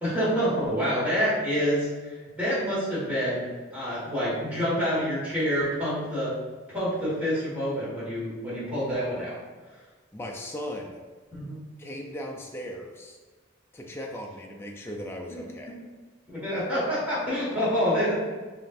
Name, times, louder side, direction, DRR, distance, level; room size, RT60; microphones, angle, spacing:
voice 1, 0.0-6.3 6.7-9.3 11.3-11.5 15.3-15.4 15.7-15.8 16.3-18.2, equal, 5° right, -9 dB, 1.5 m, -27 dB
voice 2, 10.1-11.0 11.8-13.2 13.7-15.7, equal, 10° left, 0 dB, 0.4 m, -37 dB
5.0 x 2.5 x 2.5 m, 1.4 s
head